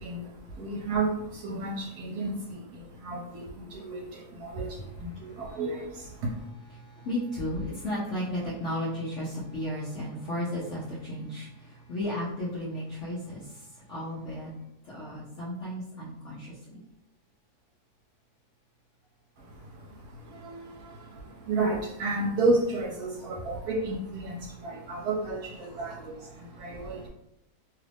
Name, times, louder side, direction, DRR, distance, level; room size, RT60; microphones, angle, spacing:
voice 1, 0.0-6.5 19.4-27.1, right 2 dB, 80° right, -3 dB, 1.1 m, -32 dB
voice 2, 6.7-14.5 14.8-16.8 24.5-24.7 25.7-25.8 26.3-27.1, left 1 dB, 55° left, -8 dB, 1.0 m, -34 dB
3.0 x 2.4 x 3.4 m, 0.85 s
omnidirectional pair, 1.7 m